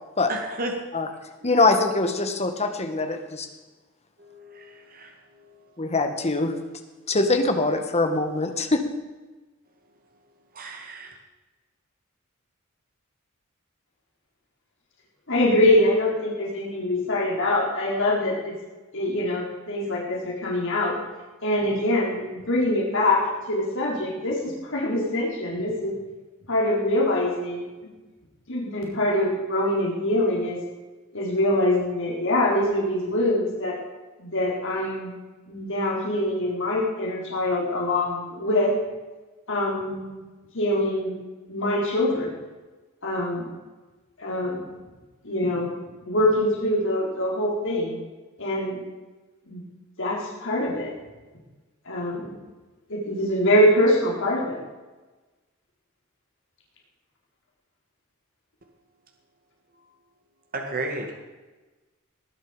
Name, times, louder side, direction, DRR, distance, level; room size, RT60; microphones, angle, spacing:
voice 1, 0.3-0.7 1.4-1.5 4.2-5.1 10.6-11.1 60.5-61.1, right 2 dB, 45° right, 3 dB, 2.1 m, -33 dB
voice 2, 1.4-3.5 5.8-6.5 7.1-8.8, left 3 dB, 30° left, 6 dB, 1.8 m, -23 dB
voice 3, 15.3-18.5 18.9-20.9 21.4-23.2 23.5-25.9 26.5-27.6 28.5-30.6 31.1-33.8 34.2-35.1 35.5-38.7 39.5-40.2 40.5-41.1 41.5-42.3 43.0-43.5 44.2-44.6 45.2-45.7 46.0-48.0 48.4-48.8 49.5-49.6 50.0-50.9 51.9-52.4 52.9-54.6, left 1 dB, 65° left, -2 dB, 4.3 m, -24 dB
19.0 x 10.5 x 5.2 m, 1.2 s
head